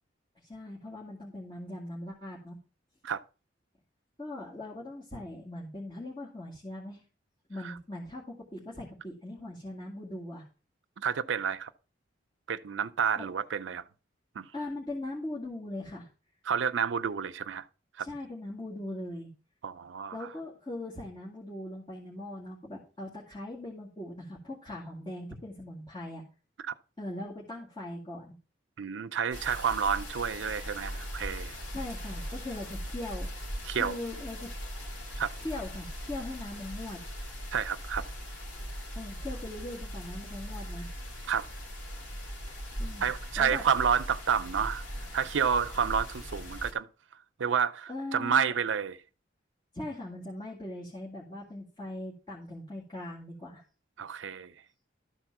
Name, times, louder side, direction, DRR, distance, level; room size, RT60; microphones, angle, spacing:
voice 1, 0.4-2.6 4.2-7.0 7.5-10.4 13.2-13.3 14.5-16.1 18.0-19.3 20.1-26.2 27.0-28.4 31.7-33.5 33.8-34.5 35.4-37.0 39.0-40.9 42.8-43.0 43.4-43.6 47.9-48.5 49.7-53.6, left 1 dB, 25° left, 2.0 m, -40 dB
voice 2, 11.0-11.7 12.5-13.8 14.4-14.5 16.5-17.6 18.0-18.1 19.6-20.3 26.7-26.8 28.8-31.6 33.6-34.0 35.2-35.3 37.5-38.1 41.3-41.5 43.0-44.8 45.1-46.9 47.4-49.0 54.0-54.5, right 7 dB, 90° right, 0.5 m, -29 dB
sound 1, 29.3-46.7, equal, 75° left, 3.3 m, -40 dB
12.5 x 4.3 x 5.9 m
head